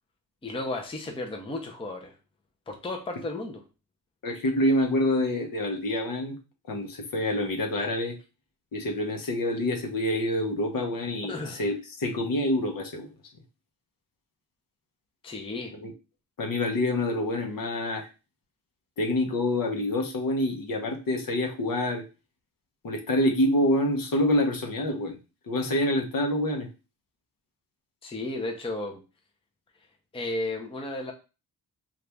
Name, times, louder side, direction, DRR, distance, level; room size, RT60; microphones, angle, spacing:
voice 1, 0.4-2.1 2.7-3.6 11.3-11.6 15.2-15.7 28.0-29.0 30.1-31.1, left 2 dB, 15° left, 2 dB, 0.6 m, -33 dB
voice 2, 4.2-6.3 6.7-8.2 8.7-13.1 15.7-15.9 16.4-18.1 19.0-22.0 22.8-25.2 25.5-26.7, left 1 dB, 55° left, 3 dB, 0.8 m, -27 dB
2.9 x 2.5 x 3.4 m, 0.31 s
cardioid pair, 85°, 40 cm